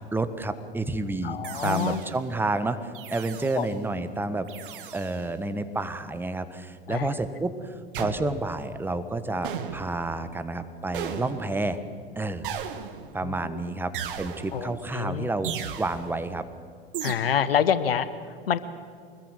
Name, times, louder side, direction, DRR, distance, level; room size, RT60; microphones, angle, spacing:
voice 1, 0.1-4.5 4.9-11.8 12.1-12.5 13.1-13.9 14.2-15.5 15.8-16.4, right 2 dB, 5° right, 11 dB, 1.4 m, -30 dB
voice 2, 1.2-2.0 3.5-3.7 6.9-7.1 13.2-13.6 14.5-15.3 17.0-18.6, left 8 dB, 70° left, 13 dB, 1.1 m, -27 dB
sound 1, 1.4-2.3 2.9-3.7 4.5-5.2 7.9-8.6 9.4-10.1 10.9-11.7 12.4-13.2 13.9-14.7 15.4-16.2 16.9-17.1, right 8 dB, 55° right, 2.0 m, -36 dB
25.0 x 21.0 x 7.8 m, 2.1 s
figure-of-eight pair, 85°, 30 cm